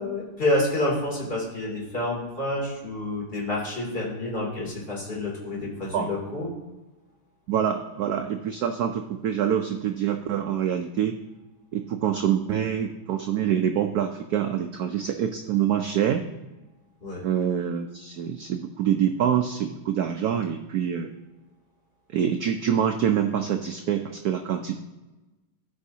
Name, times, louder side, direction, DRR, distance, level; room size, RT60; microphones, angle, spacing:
voice 1, 0.0-6.5 17.0-17.2, left 1 dB, 25° left, -5 dB, 3.1 m, -28 dB
voice 2, 7.5-11.2 11.7-16.2 17.2-21.1 22.1-24.8, right 9 dB, 80° right, 5 dB, 0.8 m, -25 dB
14.5 x 5.4 x 2.8 m, 1.1 s
omnidirectional pair, 2.3 m